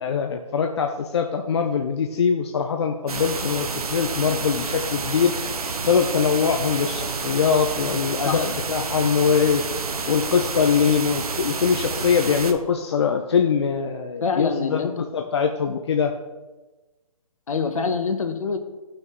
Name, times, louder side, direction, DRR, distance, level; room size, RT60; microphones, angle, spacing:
voice 1, 0.0-5.3 5.8-9.6 10.1-16.1, left 6 dB, 45° left, 4 dB, 0.6 m, -22 dB
sound 1, 3.1-12.5, right 4 dB, 80° right, 1.0 m, -29 dB
voice 2, 14.2-14.9 17.5-18.6, left 5 dB, 65° left, 7 dB, 1.1 m, -25 dB
13.0 x 6.3 x 3.1 m, 1.2 s
hypercardioid pair, 155°, 19 cm